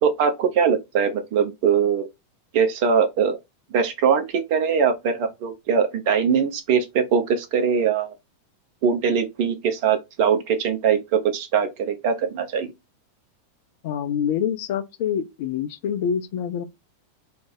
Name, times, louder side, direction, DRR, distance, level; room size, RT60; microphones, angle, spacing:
voice 1, 0.0-2.1 2.5-3.4 3.7-8.1 8.8-12.7, right 6 dB, 45° right, 0.7 m, -21 dB
voice 2, 13.8-16.6, left 8 dB, 50° left, 0.4 m, -26 dB
3.2 x 2.1 x 3.5 m
figure-of-eight pair, 90°, 0 cm